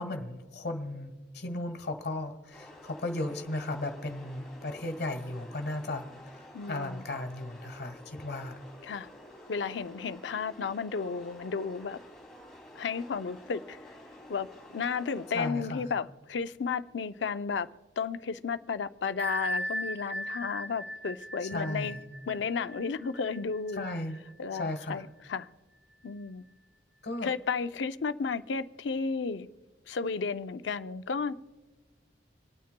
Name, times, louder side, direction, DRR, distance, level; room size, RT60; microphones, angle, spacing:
voice 1, 0.0-6.0 6.7-8.6 15.3-15.8 21.5-21.9 23.8-24.2 24.6-25.0 27.0-27.3, left 2 dB, 65° left, 1.3 m, -35 dB
sound 1, 2.5-15.5, left 1 dB, ahead, 2.7 m, -51 dB
voice 2, 6.5-7.0 8.8-9.1 9.5-12.0 12.8-13.9 14.3-14.5 14.7-17.7 18.0-22.0 22.3-23.9 24.4-25.5 26.0-26.4 27.2-29.5 29.9-31.3, left 5 dB, 80° left, 0.5 m, -33 dB
Bell, 19.2-24.6, equal, 85° right, 0.6 m, -38 dB
27.0 x 9.4 x 2.2 m
head